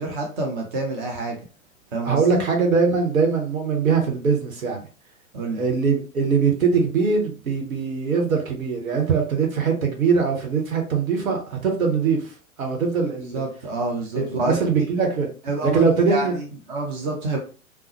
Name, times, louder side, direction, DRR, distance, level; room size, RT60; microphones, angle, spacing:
voice 1, 0.0-1.4 1.9-2.4 5.3-5.6 13.3-14.9 15.4-17.4, right 2 dB, 35° right, 1 dB, 0.7 m, -28 dB
voice 2, 2.0-4.8 5.5-12.3 12.6-13.4 14.1-15.3 15.6-16.3, right 5 dB, 70° right, 1 dB, 1.1 m, -22 dB
3.5 x 2.0 x 2.8 m, 0.38 s
figure-of-eight pair, 105°, 43 cm